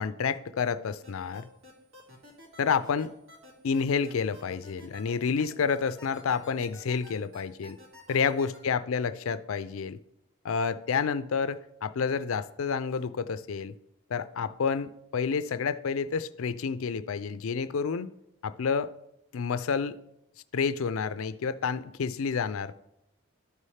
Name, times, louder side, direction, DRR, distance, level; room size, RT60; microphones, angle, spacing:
voice 1, 0.0-1.5 2.6-3.1 3.6-7.8 8.1-10.0 10.4-13.7 14.1-18.1 18.4-18.9 19.3-20.0 20.5-22.7, left 6 dB, 75° left, 14 dB, 0.4 m, -29 dB
sound 1, 1.0-8.6, left 1 dB, 75° right, 2.5 m, -50 dB
12.5 x 5.5 x 3.3 m, 0.83 s
head